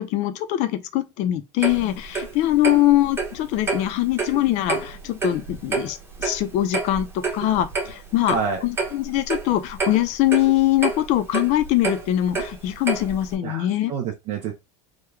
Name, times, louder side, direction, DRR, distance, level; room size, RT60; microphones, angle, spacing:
voice 1, 0.0-7.1 7.3-8.4 8.6-13.9, left 14 dB, 50° left, 0.7 m, -22 dB
Clock, 1.6-13.3, right 4 dB, 15° right, 1.1 m, -29 dB
voice 2, 8.3-8.6 13.4-14.6, right 6 dB, 50° right, 0.8 m, -28 dB
3.7 x 2.3 x 3.2 m
supercardioid pair, 130°, 15 cm